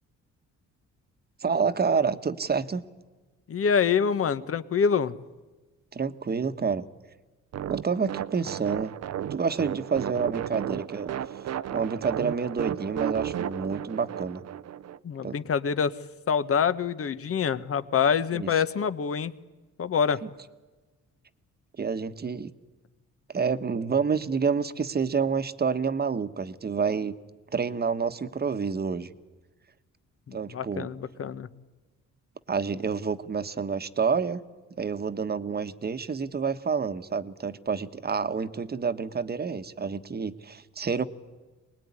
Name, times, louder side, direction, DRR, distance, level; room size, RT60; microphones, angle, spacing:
voice 1, 1.4-2.9 5.9-6.8 7.7-8.9 9.3-11.1 11.7-14.4 15.2-15.4 18.3-18.5 20.2-20.3 21.8-22.5 23.3-27.1 27.5-29.1 30.3-30.9 32.5-34.4 34.8-41.0, right 5 dB, 30° right, 11 dB, 1.4 m, -28 dB
voice 2, 3.5-5.2 15.0-16.0 16.3-19.3 19.8-20.2 30.3-31.5, left 6 dB, 50° left, 13 dB, 1.3 m, -26 dB
sound 1, 7.5-15.0, right 10 dB, 55° right, 0.8 m, -34 dB
24.5 x 20.0 x 9.8 m, 1.2 s
cardioid pair, 90°, 30 cm